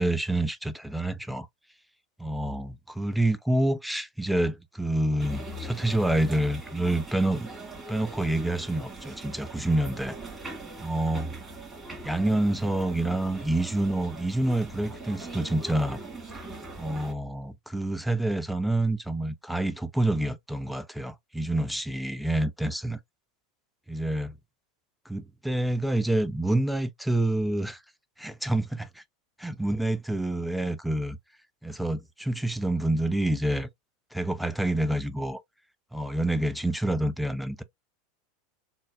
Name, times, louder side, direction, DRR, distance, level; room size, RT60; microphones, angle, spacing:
voice 1, 0.0-1.5 2.2-7.5 7.9-10.2 10.8-11.4 12.0-16.0 16.8-23.0 23.9-24.3 25.1-27.8 28.2-29.0 29.4-31.2 31.6-33.7 34.1-35.4 35.9-37.6, right 1 dB, ahead, 0.5 m, -27 dB
sound 1, 5.2-17.1, right 2 dB, 20° right, 2.2 m, -41 dB
3.8 x 2.2 x 2.2 m
hypercardioid pair, 90°, 0 cm